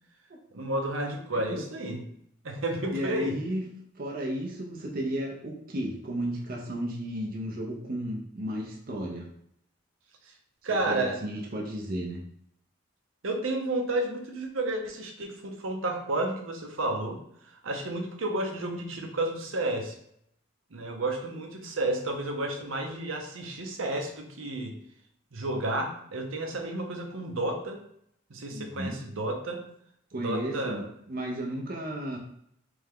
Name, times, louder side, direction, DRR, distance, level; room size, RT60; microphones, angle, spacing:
voice 1, 0.5-2.0 2.4-3.4 10.3-10.4 10.6-11.2 13.2-19.9 20.7-24.8 25.3-27.8 28.3-29.6 30.2-30.9, right 2 dB, 85° right, 3 dB, 0.8 m, -31 dB
voice 2, 2.9-3.6 4.0-9.3 10.6-12.2 28.5-29.0 30.1-30.8 31.1-32.2, right 1 dB, 45° right, -1 dB, 0.6 m, -33 dB
3.4 x 3.3 x 3.6 m, 0.71 s
head